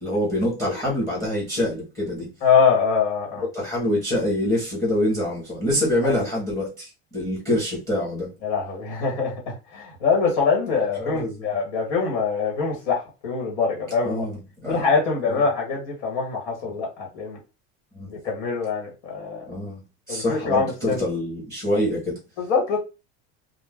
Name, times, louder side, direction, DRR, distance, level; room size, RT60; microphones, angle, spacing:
voice 1, 0.0-2.3 3.5-8.3 11.0-11.3 14.0-14.8 17.9-18.1 19.5-19.8 20.1-22.2, left 1 dB, 10° left, 0.9 m, -25 dB
voice 2, 2.4-3.4 6.0-6.1 8.4-14.2 14.7-17.4 18.1-19.4 20.1-21.0 22.4-22.8, left 5 dB, 80° left, 1.3 m, -24 dB
2.5 x 2.2 x 3.3 m
cardioid pair, 175°, 34 cm